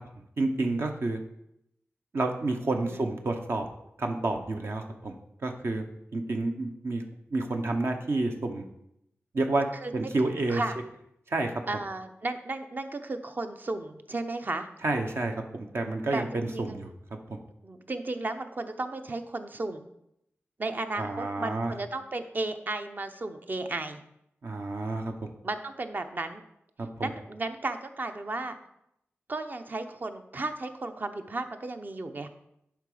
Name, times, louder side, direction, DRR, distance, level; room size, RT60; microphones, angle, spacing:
voice 1, 0.4-1.2 2.1-3.6 4.0-5.1 5.4-5.9 6.1-7.0 7.3-8.6 9.3-9.7 9.9-10.6 11.3-11.5 14.8-16.9 17.3-17.4 21.0-21.7 24.4-25.3 26.8-27.1, right 2 dB, 65° right, 4 dB, 0.9 m, -29 dB
voice 2, 11.7-14.7 16.1-16.8 17.6-19.9 20.6-24.0 25.4-26.4 27.0-28.6 29.3-32.3, right 2 dB, 45° right, 8 dB, 0.7 m, -34 dB
11.0 x 4.7 x 5.0 m, 0.79 s
wide cardioid pair, 105°, 5 cm